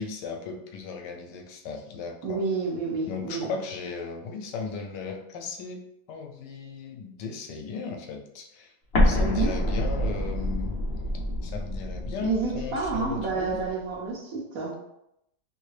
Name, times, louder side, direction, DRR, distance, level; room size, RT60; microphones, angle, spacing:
voice 1, 0.0-2.4 3.1-5.8 6.1-8.7 9.0-10.8 11.4-13.6, left 5 dB, 80° left, 3 dB, 1.2 m, -36 dB
voice 2, 2.2-3.5 9.2-9.6 12.2-14.7, right 4 dB, 65° right, -1 dB, 1.0 m, -29 dB
Explosion, 8.9-13.7, left 1 dB, 60° left, 0.6 m, -27 dB
3.0 x 2.8 x 3.1 m, 0.80 s
omnidirectional pair, 1.8 m